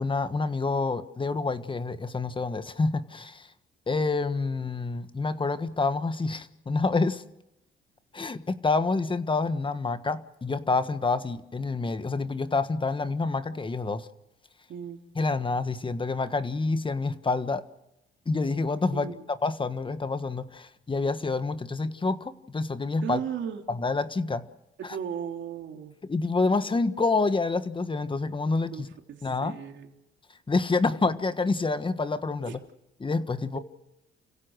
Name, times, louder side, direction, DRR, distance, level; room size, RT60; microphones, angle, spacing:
voice 1, 0.0-3.5 3.9-7.2 8.1-14.1 15.1-17.6 18.2-19.1 19.4-23.2 23.7-24.5 24.8-25.0 26.1-28.9 29.2-29.6 30.5-32.6 33.0-33.6, left 3 dB, 25° left, 12 dB, 1.4 m, -27 dB
voice 2, 14.7-15.0 18.9-19.2 23.0-23.6 24.9-25.9 28.6-29.9 32.4-32.6 33.5-33.6, right 8 dB, 70° right, 4 dB, 3.1 m, -36 dB
30.0 x 16.0 x 6.4 m, 0.93 s
cardioid pair, 90°, 20 cm